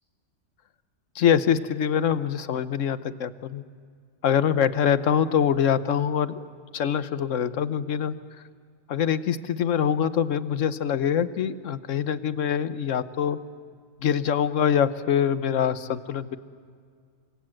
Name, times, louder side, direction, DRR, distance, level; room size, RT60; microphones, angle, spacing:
voice 1, 1.1-3.6 4.2-6.4 6.7-8.1 8.9-13.4 14.0-16.4, left 8 dB, 85° left, 13 dB, 1.2 m, -24 dB
29.0 x 24.5 x 7.7 m, 2.1 s
omnidirectional pair, 1.3 m